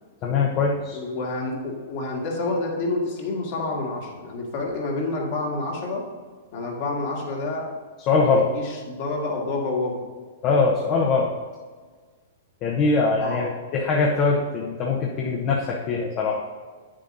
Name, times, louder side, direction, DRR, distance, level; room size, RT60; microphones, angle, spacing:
voice 1, 0.2-1.0 8.1-8.5 10.4-11.3 12.6-16.4, left 4 dB, 40° left, -2 dB, 0.9 m, -22 dB
voice 2, 0.9-6.0 6.5-7.7 8.3-10.0 13.2-13.5, left 2 dB, 55° left, -1 dB, 2.0 m, -28 dB
8.2 x 7.4 x 2.7 m, 1.5 s
hypercardioid pair, 125°, 0 cm